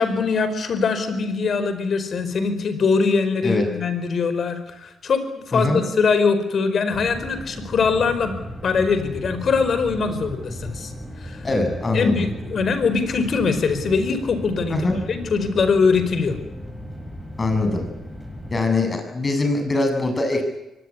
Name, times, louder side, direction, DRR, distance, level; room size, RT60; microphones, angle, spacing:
voice 1, 0.0-8.3 8.6-10.9 11.2-11.5 11.9-14.8 15.1-16.4, left 5 dB, 55° left, 10 dB, 4.9 m, -22 dB
sound 1, 6.9-18.6, equal, 5° left, 8.0 m, -36 dB
voice 2, 11.4-12.3 14.7-15.0 17.4-17.9 18.5-20.4, left 2 dB, 30° left, 5 dB, 7.6 m, -22 dB
24.0 x 19.5 x 9.9 m, 0.92 s
cardioid pair, 95°, 0 cm